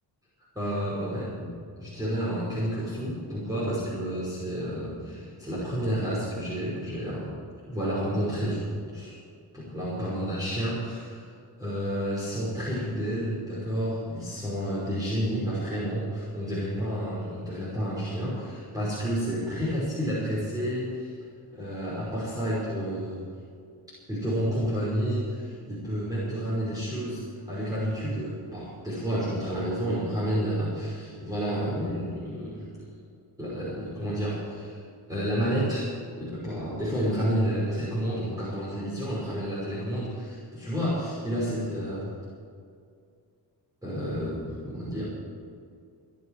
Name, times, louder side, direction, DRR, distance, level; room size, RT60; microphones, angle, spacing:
voice 1, 0.6-7.3 7.7-9.2 9.5-11.2 11.6-21.1 21.5-23.2 24.1-32.7 33.4-34.8 35.1-35.9 36.2-42.1 43.8-45.0, equal, 10° right, -8 dB, 5.5 m, -30 dB
27.5 x 10.0 x 4.9 m, 2.2 s
cardioid pair, 140°, 40 cm